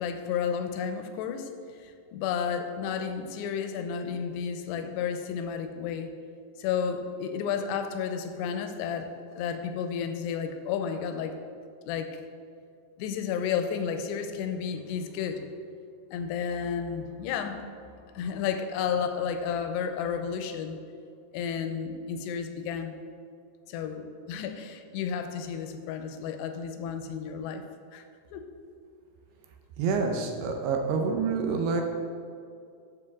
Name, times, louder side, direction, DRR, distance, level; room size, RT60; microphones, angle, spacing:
voice 1, 0.0-1.5 1.8-6.1 6.6-9.1 9.4-11.4 11.8-12.2 13.0-15.5 16.1-17.8 18.1-20.8 21.3-23.0 23.7-27.6 27.9-28.0 28.3-28.4, left 7 dB, 85° left, 7 dB, 2.5 m, -32 dB
voice 2, 29.8-31.8, right 5 dB, 80° right, 3 dB, 2.6 m, -27 dB
9.8 x 7.2 x 3.6 m, 2.4 s
omnidirectional pair, 5.1 m